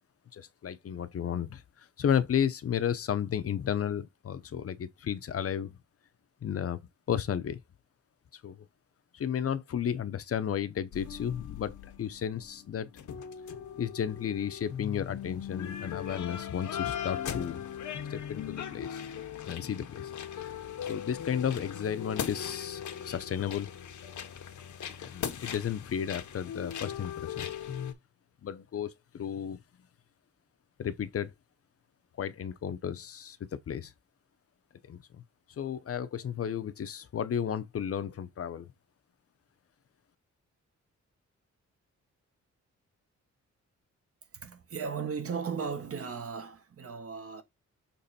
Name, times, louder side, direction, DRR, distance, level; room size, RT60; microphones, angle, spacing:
voice 1, 0.3-5.8 6.4-6.8 7.1-7.6 8.3-8.6 9.1-12.9 13.8-17.6 18.1-19.0 19.4-20.1 20.9-23.7 25.0-27.5 28.4-29.6 30.8-31.3 32.2-33.4 33.7-33.9 34.9-35.2 35.6-38.7, left 8 dB, 50° left, 0.8 m, -33 dB
sound 1, 10.9-27.9, left 9 dB, 80° left, 1.1 m, -39 dB
voice 2, 44.3-47.4, right 6 dB, 50° right, 1.4 m, -36 dB
6.8 x 3.3 x 4.2 m
wide cardioid pair, 150°, 29 cm